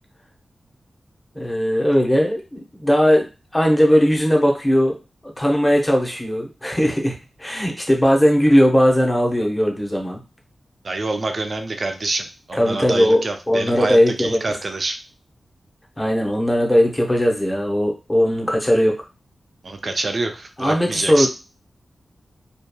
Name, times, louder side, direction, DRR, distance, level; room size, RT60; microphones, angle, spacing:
voice 1, 1.4-3.2 3.5-5.0 5.2-10.2 12.5-14.4 16.0-18.9 20.6-21.3, equal, 15° left, 1 dB, 0.6 m, -18 dB
voice 2, 10.8-15.0 19.6-21.3, right 3 dB, 50° right, 5 dB, 0.4 m, -26 dB
2.7 x 2.3 x 2.2 m, 0.29 s
wide cardioid pair, 105°, 0 cm